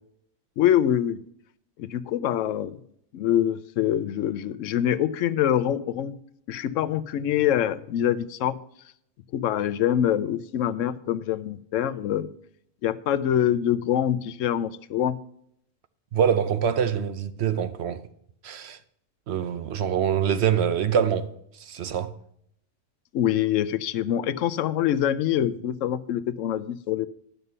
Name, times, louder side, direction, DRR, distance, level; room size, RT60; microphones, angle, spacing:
voice 1, 0.6-1.2 1.8-2.8 3.1-6.1 6.5-8.6 9.3-12.3 12.8-15.2 23.1-27.1, left 10 dB, 75° left, 0.9 m, -25 dB
voice 2, 16.1-18.1 18.4-18.8 19.3-22.1, right 8 dB, 65° right, 0.8 m, -25 dB
11.0 x 6.8 x 5.5 m
omnidirectional pair, 1.3 m